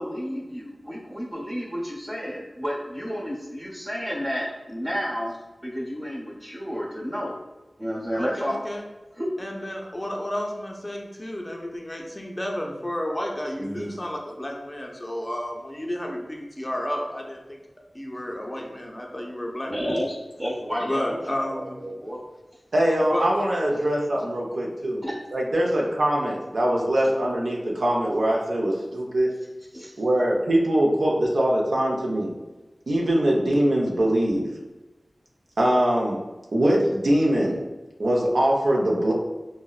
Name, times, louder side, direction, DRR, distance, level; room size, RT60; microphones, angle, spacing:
voice 1, 0.0-5.4 5.6-7.4 7.8-8.6 9.2-9.3 19.7-22.2 24.9-25.1 29.7-29.9, equal, 40° right, -5 dB, 0.9 m, -31 dB
voice 2, 8.1-8.9 9.4-17.6 17.9-19.9 20.8-21.8 23.0-23.3, left 1 dB, 25° left, 0 dB, 0.5 m, -32 dB
voice 3, 22.7-25.0 25.3-29.3 30.0-32.3 32.9-34.5 35.6-36.2 36.5-37.6 38.0-39.1, right 1 dB, 80° right, -3 dB, 0.5 m, -22 dB
3.7 x 2.0 x 2.3 m, 1.1 s
wide cardioid pair, 75°, 0 cm